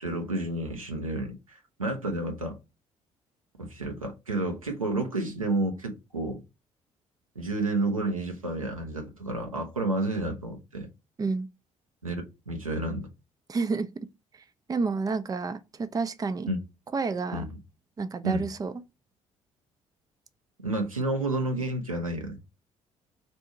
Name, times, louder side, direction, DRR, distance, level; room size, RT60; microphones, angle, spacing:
voice 1, 0.0-2.6 3.6-6.4 7.3-10.9 12.0-13.1 16.5-16.6 17.3-17.6 18.2-18.5 20.6-22.4, right 2 dB, 90° right, 0.6 m, -30 dB
voice 2, 13.5-13.9 14.7-16.5 16.9-17.4 18.0-18.7, right 4 dB, 20° right, 0.5 m, -29 dB
3.4 x 2.7 x 4.5 m
figure-of-eight pair, 45°, 17 cm